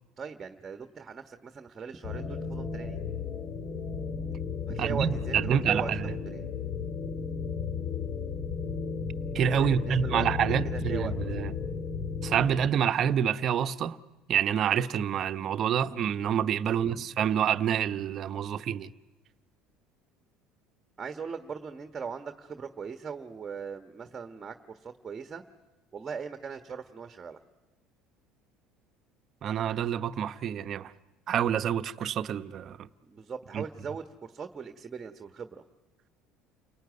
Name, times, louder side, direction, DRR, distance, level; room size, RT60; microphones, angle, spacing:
voice 1, 0.2-3.0 4.7-5.9 6.2-6.5 9.6-10.2 10.7-11.1 16.7-17.0 21.0-25.4 25.9-27.4 33.0-35.6, right 6 dB, 30° right, 1.3 m, -39 dB
sound 1, 2.0-12.7, left 5 dB, 50° left, 2.0 m, -34 dB
voice 2, 4.8-6.1 9.3-11.5 12.2-14.0 14.3-18.9 29.4-30.9 31.3-32.9 33.5-33.6, right 9 dB, 50° right, 1.0 m, -27 dB
29.5 x 18.5 x 9.5 m
hypercardioid pair, 80°, 0 cm